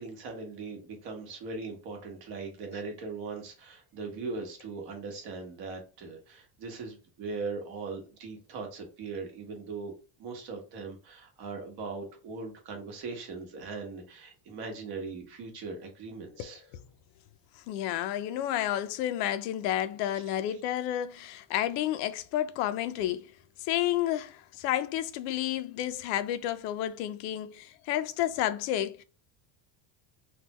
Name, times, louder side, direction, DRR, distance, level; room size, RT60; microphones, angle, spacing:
voice 1, 0.0-9.9 10.2-16.6 20.1-20.2 20.5-20.6, right 4 dB, 55° right, 1.3 m, -40 dB
voice 2, 16.4-16.8 17.7-23.3 23.6-29.0, left 12 dB, 85° left, 0.6 m, -31 dB
3.6 x 2.3 x 2.9 m
cardioid pair, 170°, 46 cm